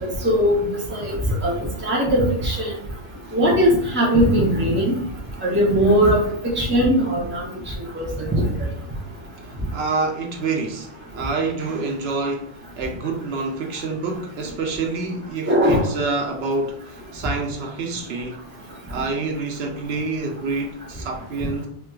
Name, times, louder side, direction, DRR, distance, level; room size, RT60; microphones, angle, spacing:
voice 1, 0.0-1.1 1.4-1.5 1.8-2.7 3.3-4.9 5.4-6.2 6.6-7.4 8.0-8.4 15.5-15.8, equal, 20° right, 0.3 m, -19 dB
voice 2, 9.7-10.9 11.2-12.5 12.8-18.5 18.9-21.7, right 3 dB, 70° right, 0.8 m, -27 dB
4.1 x 2.2 x 2.3 m
omnidirectional pair, 1.2 m